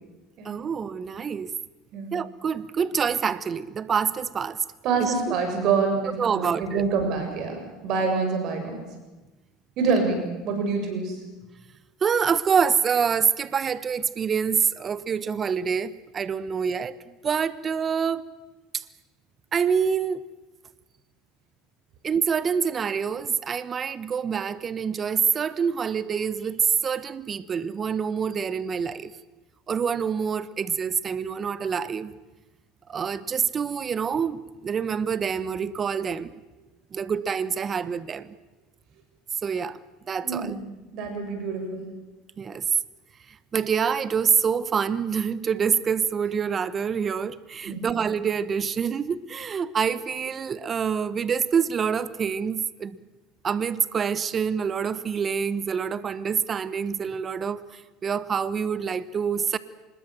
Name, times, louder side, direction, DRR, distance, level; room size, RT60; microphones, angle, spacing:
voice 1, 0.4-1.5 2.1-4.6 5.0-5.1 6.2-6.8 12.0-18.2 18.7-18.8 19.5-20.2 22.0-29.1 29.7-32.1 32.9-36.3 36.9-38.3 39.4-39.8 40.1-40.6 42.4-42.6 43.5-53.0 53.4-59.6, right 6 dB, 35° right, 1.2 m, -26 dB
voice 2, 4.8-8.9 9.8-11.2 40.2-40.7 40.9-41.9 47.6-47.8, right 4 dB, 60° right, 7.3 m, -26 dB
25.0 x 21.0 x 7.7 m
supercardioid pair, 95°, 0 cm